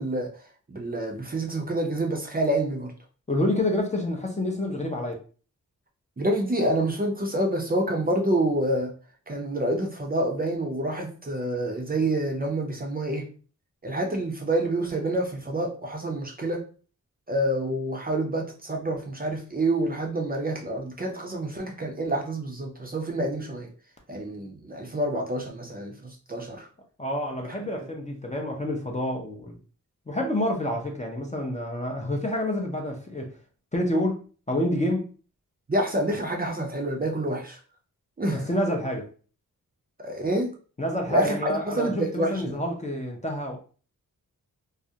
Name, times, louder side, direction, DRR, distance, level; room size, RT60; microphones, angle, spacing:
voice 1, 0.0-2.9 6.2-8.9 9.3-13.3 13.8-16.6 17.3-23.7 24.1-26.7 27.5-27.9 35.7-37.6 38.2-38.5 40.0-40.5 41.1-42.6, right 1 dB, 25° right, 0.5 m, -27 dB
voice 2, 3.3-5.1 27.0-29.6 30.1-33.3 33.7-35.1 38.3-39.1 40.8-43.6, left 1 dB, 20° left, 0.5 m, -28 dB
2.4 x 2.0 x 2.7 m
cardioid pair, 60°, 35 cm